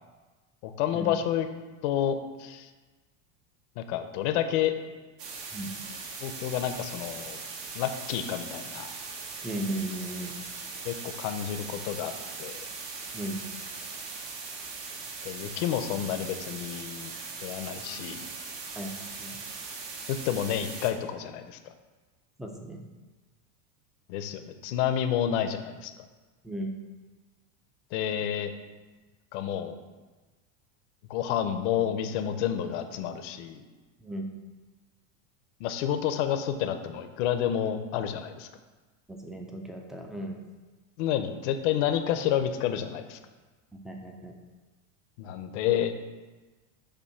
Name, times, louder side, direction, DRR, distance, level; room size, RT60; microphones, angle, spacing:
voice 1, 0.6-1.5 1.8-2.7 3.8-4.7 6.2-7.4 7.7-8.9 10.8-12.1 12.4-12.6 15.2-17.1 17.4-18.2 20.1-21.6 24.1-25.9 27.9-28.5 29.3-29.8 31.1-33.6 35.6-38.5 41.0-43.2 45.2-45.9, left 10 dB, 65° left, 8 dB, 0.7 m, -29 dB
sound 1, 5.2-20.9, right 4 dB, 60° right, 1.3 m, -40 dB
voice 2, 9.4-10.3 13.1-13.4 18.8-19.4 22.4-22.8 26.4-26.7 34.0-34.2 39.1-40.4 43.7-44.3, right 1 dB, ahead, 2 dB, 0.4 m, -36 dB
6.8 x 2.7 x 5.7 m, 1.3 s
supercardioid pair, 135°, 38 cm